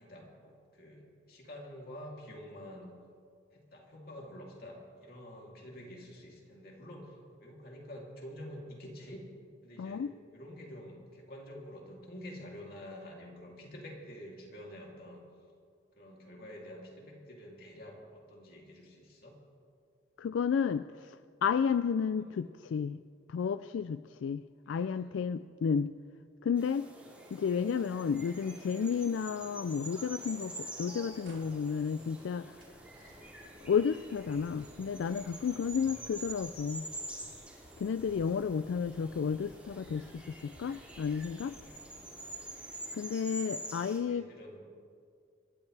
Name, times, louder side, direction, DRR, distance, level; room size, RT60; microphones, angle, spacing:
voice 1, 0.0-2.9 3.5-9.3 9.6-15.2 16.0-19.4 22.2-22.4 24.7-25.2 35.8-36.2 41.6-42.2 43.8-44.6, equal, 50° left, -2 dB, 3.0 m, -48 dB
voice 2, 9.8-10.1 20.2-23.0 23.3-25.9 26.4-26.9 27.3-32.6 33.7-36.9 37.8-41.6 42.9-44.3, left 6 dB, 85° left, 13 dB, 0.3 m, -32 dB
sound 1, 26.6-44.0, right 1 dB, 5° right, 3.1 m, -47 dB
sound 2, 27.5-35.6, right 1 dB, 30° right, 3.6 m, -58 dB
sound 3, 31.2-42.7, equal, 85° right, 3.5 m, -59 dB
26.5 x 13.0 x 3.3 m, 2.2 s
head